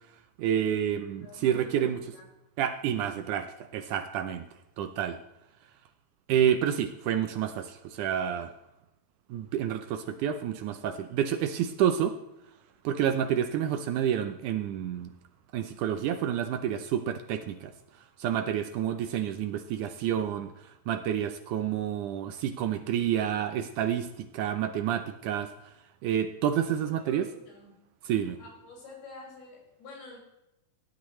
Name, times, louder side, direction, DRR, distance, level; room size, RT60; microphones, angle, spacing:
voice 1, 0.4-2.0 2.6-4.5 4.8-5.2 6.3-8.5 9.3-12.2 12.8-15.1 15.5-17.7 18.2-25.5 26.0-27.3 28.1-28.4, right 9 dB, 75° right, 9 dB, 1.9 m, -29 dB
voice 2, 1.2-2.3 26.8-27.7 28.4-30.2, left 3 dB, 85° left, -3 dB, 7.4 m, -48 dB
18.0 x 11.5 x 3.1 m, 0.90 s
omnidirectional pair, 4.2 m